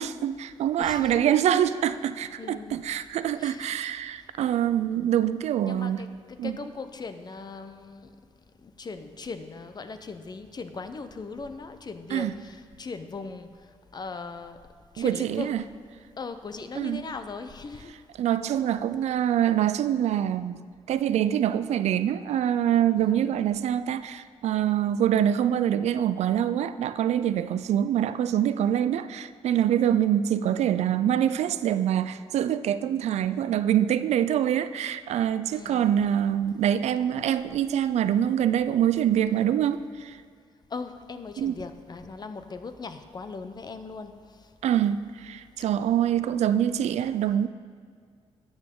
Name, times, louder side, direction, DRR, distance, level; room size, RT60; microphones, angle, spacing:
voice 1, 0.0-6.0 6.4-6.5 12.1-12.3 15.0-15.6 16.8-17.0 18.2-40.2 41.4-41.5 44.6-47.5, right 10 dB, 85° right, 13 dB, 0.4 m, -25 dB
voice 2, 0.8-1.3 2.4-2.8 3.3-3.8 5.2-8.1 8.6-13.5 13.9-14.6 14.9-15.5 16.2-17.9 23.0-23.3 35.5-35.9 40.7-44.1, left 4 dB, 40° left, 10 dB, 0.7 m, -39 dB
12.5 x 8.8 x 3.7 m, 2.1 s
cardioid pair, 95°, 11 cm